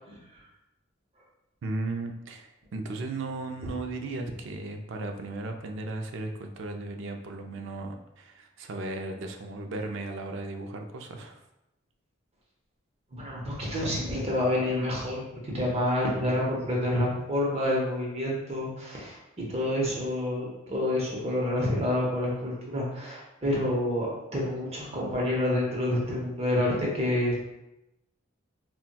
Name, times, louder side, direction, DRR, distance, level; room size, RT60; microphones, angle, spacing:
voice 1, 1.6-11.4, right 2 dB, 65° right, 4 dB, 0.4 m, -36 dB
voice 2, 13.1-27.3, left 1 dB, 30° right, -3 dB, 0.8 m, -28 dB
3.9 x 2.2 x 2.2 m, 0.91 s
head